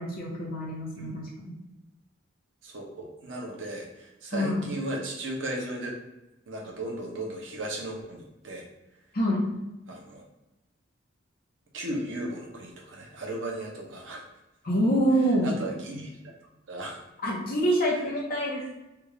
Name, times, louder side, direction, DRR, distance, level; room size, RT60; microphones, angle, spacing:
voice 1, 0.0-1.5 4.3-4.7 9.1-9.5 14.6-15.5 17.2-18.7, equal, 50° left, -3 dB, 1.0 m, -26 dB
voice 2, 2.6-5.9 6.5-8.6 9.9-10.2 11.7-14.3 15.4-16.2 16.7-17.0, right 1 dB, 75° right, -1 dB, 0.8 m, -36 dB
3.4 x 2.4 x 3.2 m, 0.98 s
head